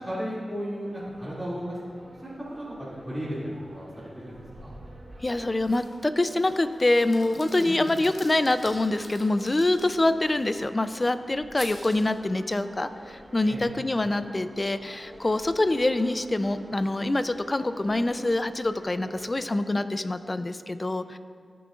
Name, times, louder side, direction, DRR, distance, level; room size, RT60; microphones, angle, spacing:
voice 1, 0.0-1.8 2.2-4.7 7.6-7.9 13.4-13.7, equal, 10° right, -9 dB, 2.6 m, -35 dB
sound 1, 0.8-19.3, right 1 dB, 80° right, 2.2 m, -48 dB
voice 2, 5.2-21.2, left 2 dB, 35° left, 11 dB, 0.5 m, -25 dB
sound 2, 5.6-6.0 6.4-10.6 11.6-12.2, left 2 dB, 60° left, 1.9 m, -45 dB
18.5 x 7.0 x 2.5 m, 2.1 s
cardioid pair, 50°, 0 cm